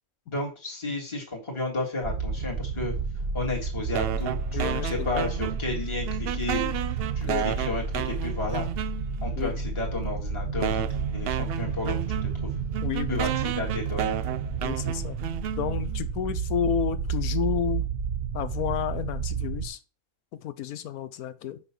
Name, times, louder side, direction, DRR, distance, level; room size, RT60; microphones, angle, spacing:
voice 1, 0.3-2.9 3.3-6.7 7.2-8.7 9.2-10.9 11.1-12.5 13.1-14.2, left 2 dB, 20° left, -1 dB, 2.0 m, -33 dB
sound 1, 2.0-19.7, right 5 dB, 45° right, 1.4 m, -31 dB
sound 2, 3.9-5.8 6.1-9.3 10.0-10.1 10.6-16.0, right 10 dB, 70° right, 0.5 m, -32 dB
voice 2, 4.5-5.2 7.3-7.5 9.3-9.6 12.8-13.2 14.6-15.2 15.6-17.8 18.3-19.8 20.3-21.6, left 9 dB, 90° left, 14 dB, 1.2 m, -31 dB
5.9 x 5.5 x 5.9 m, 0.35 s
omnidirectional pair, 1.5 m